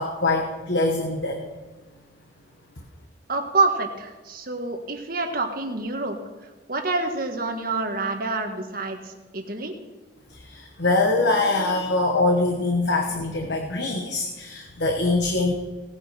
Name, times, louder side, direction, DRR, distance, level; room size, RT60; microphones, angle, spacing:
voice 1, 0.0-1.4 10.3-15.5, left 2 dB, 60° left, 2 dB, 1.3 m, -23 dB
voice 2, 3.3-6.2 6.7-9.7, right 3 dB, 50° right, 4 dB, 1.6 m, -27 dB
18.5 x 9.9 x 4.3 m, 1.2 s
head